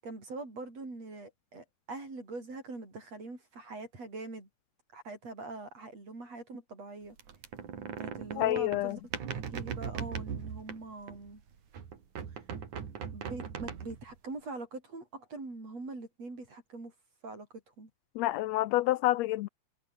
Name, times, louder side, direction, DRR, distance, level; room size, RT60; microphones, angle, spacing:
voice 1, 0.0-4.5 4.9-7.2 8.0-9.0 9.3-11.4 13.1-16.9 17.2-17.5 17.8-17.9, right 3 dB, 60° right, 8.9 m, -43 dB
sound 1, 7.2-11.4 11.7-14.2, right 7 dB, 90° right, 4.3 m, -39 dB
voice 2, 8.4-9.0 18.1-19.5, left 16 dB, 80° left, 1.6 m, -28 dB
omnidirectional pair, 3.3 m